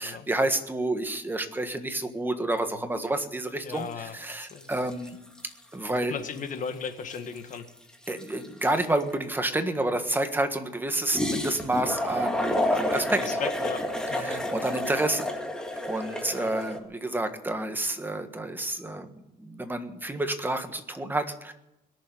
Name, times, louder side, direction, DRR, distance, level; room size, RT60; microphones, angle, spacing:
voice 1, 0.0-5.2 5.7-6.1 8.1-13.4 14.2-15.3 15.9-21.5, right 2 dB, 10° right, 7 dB, 1.6 m, -29 dB
voice 2, 3.6-4.7 5.9-7.6 13.0-13.8 14.1-14.4 16.3-16.5, left 6 dB, 50° left, 8 dB, 1.8 m, -37 dB
sound 1, 3.8-4.0 4.3-5.5 5.9-6.0 6.2-9.1 11.1-16.8, left 1 dB, 5° left, 2.2 m, -30 dB
21.5 x 7.3 x 9.3 m, 0.91 s
cardioid pair, 110°, 17 cm